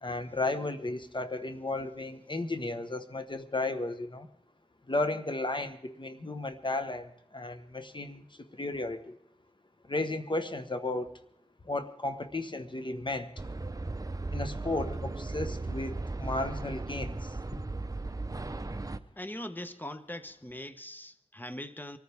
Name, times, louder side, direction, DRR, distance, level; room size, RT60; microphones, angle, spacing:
voice 1, 0.0-4.3 4.9-9.2 9.8-11.1 11.6-13.3 14.3-17.6, left 2 dB, 40° left, 1.4 m, -34 dB
sound 1, 13.4-19.0, right 2 dB, 30° right, 0.7 m, -36 dB
voice 2, 19.2-22.0, left 1 dB, 15° left, 1.2 m, -41 dB
23.5 x 14.0 x 3.6 m
wide cardioid pair, 45°, 13 cm